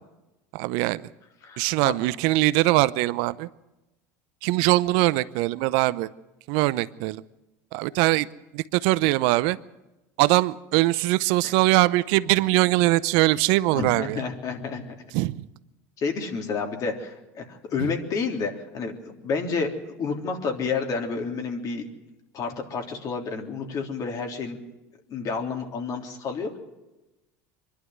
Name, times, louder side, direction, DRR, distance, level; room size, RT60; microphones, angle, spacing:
voice 1, 0.5-1.1 1.6-3.5 4.4-6.1 6.5-7.2 7.7-8.3 8.5-9.6 10.2-14.2 15.1-15.4, right 19 dB, 70° right, 17 dB, 0.7 m, -22 dB
voice 2, 1.4-1.9 11.4-11.5 13.7-14.9 16.0-21.9 22.3-24.6 25.1-26.6, left 5 dB, 45° left, 3 dB, 3.4 m, -30 dB
24.5 x 11.5 x 9.5 m, 1.0 s
supercardioid pair, 95°, 8 cm